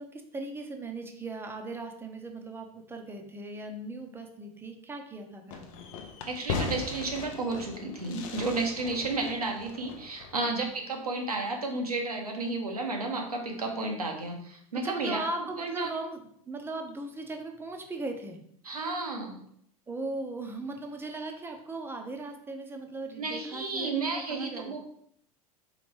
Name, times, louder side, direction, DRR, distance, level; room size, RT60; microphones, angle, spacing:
voice 1, 0.0-5.9 10.5-10.7 14.8-16.2 16.5-18.4 19.9-24.7, right 2 dB, 10° right, 4 dB, 0.6 m, -38 dB
Fireworks, 5.5-10.7, left 5 dB, 60° left, 0.6 m, -38 dB
voice 2, 6.3-15.2 15.6-15.9 18.6-19.4 23.2-24.8, right 3 dB, 85° right, 2 dB, 0.8 m, -32 dB
4.2 x 3.0 x 3.2 m, 0.67 s
figure-of-eight pair, 85°, 19 cm